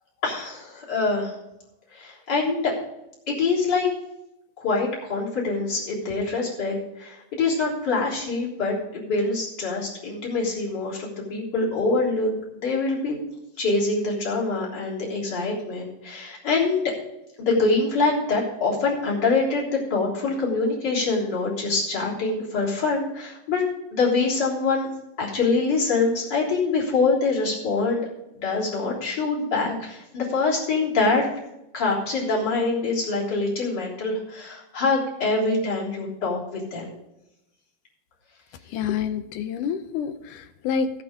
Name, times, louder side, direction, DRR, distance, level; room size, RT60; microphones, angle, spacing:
voice 1, 0.2-1.3 1.9-2.7 3.3-3.9 4.6-13.2 13.6-16.8 17.4-23.6 23.9-24.9 25.2-28.1 28.3-31.3 31.7-36.9, left 3 dB, 30° left, -5 dB, 3.9 m, -25 dB
voice 2, 38.7-40.9, left 7 dB, 75° left, 10 dB, 2.1 m, -28 dB
17.5 x 6.1 x 5.0 m, 0.88 s
omnidirectional pair, 4.1 m